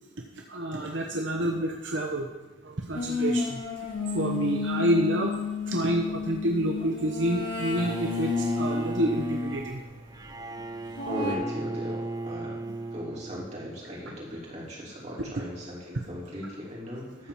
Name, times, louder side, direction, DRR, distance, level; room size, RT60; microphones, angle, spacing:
voice 1, 0.5-2.3 2.9-3.5 4.1-5.3 5.7-8.3 8.6-9.8, right 1 dB, 70° right, 1 dB, 0.9 m, -28 dB
sound 1, 2.9-9.6 10.9-11.3, left 4 dB, 60° left, 2.5 m, -31 dB
Bowed string instrument, 7.8-13.9, right 2 dB, 20° right, 0.4 m, -36 dB
voice 2, 11.0-12.6 12.9-17.3, left 1 dB, 35° right, -5 dB, 3.2 m, -38 dB
13.0 x 4.5 x 7.0 m, 1.1 s
head